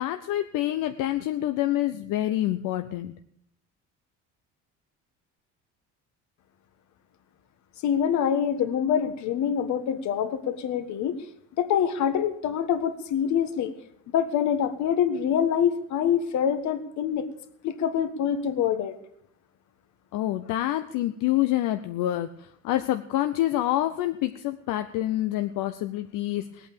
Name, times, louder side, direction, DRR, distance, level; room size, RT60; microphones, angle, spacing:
voice 1, 0.0-3.1 20.1-26.7, left 14 dB, 75° left, 8 dB, 0.8 m, -27 dB
voice 2, 7.8-11.2 11.6-13.7 14.1-17.3 17.6-18.9, left 8 dB, 60° left, 10 dB, 1.5 m, -25 dB
19.0 x 8.6 x 6.9 m, 0.69 s
cardioid pair, 160°, 32 cm